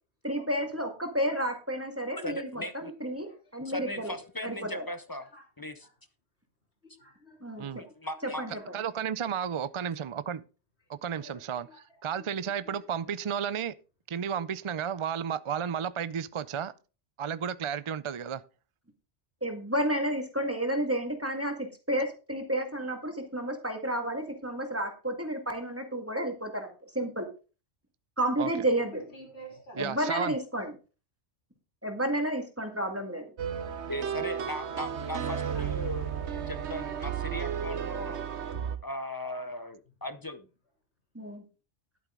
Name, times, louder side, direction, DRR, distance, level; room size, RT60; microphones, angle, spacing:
voice 1, 0.2-4.1 4.4-4.8 7.4-7.7 8.2-8.5 19.4-27.3 28.2-29.0 29.8-30.7 31.8-33.3 41.2-41.4, right 1 dB, 10° right, 1.9 m, -31 dB
voice 2, 2.2-2.9 3.6-5.3 5.6-5.9 7.7-8.6 33.9-36.1 36.5-38.2 38.8-40.5, left 1 dB, 25° left, 0.6 m, -38 dB
voice 3, 6.9-8.2 8.6-8.7 11.2-11.8 12.3-12.7 28.9-30.1 35.3-35.7, equal, 70° left, 3.8 m, -50 dB
voice 4, 8.7-10.4 10.9-13.7 14.1-16.7 17.2-18.4 28.4-28.5 29.7-30.4, right 8 dB, 50° right, 0.4 m, -33 dB
sound 1, 33.4-38.8, right 8 dB, 75° right, 1.2 m, -33 dB
11.5 x 8.7 x 3.8 m
omnidirectional pair, 1.2 m